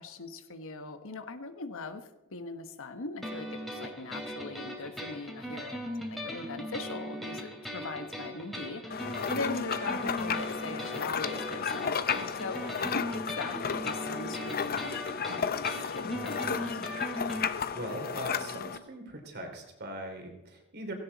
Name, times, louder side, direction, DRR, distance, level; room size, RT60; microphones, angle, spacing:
voice 1, 0.0-5.8 6.1-16.9, left 3 dB, 65° left, 9 dB, 1.2 m, -41 dB
sound 1, 3.2-17.5, equal, ahead, 2.7 m, -39 dB
sound 2, 8.9-18.8, left 6 dB, 45° left, 0.7 m, -33 dB
voice 2, 17.4-20.9, equal, 50° right, 4 dB, 3.1 m, -41 dB
17.0 x 16.5 x 4.1 m, 1.0 s
head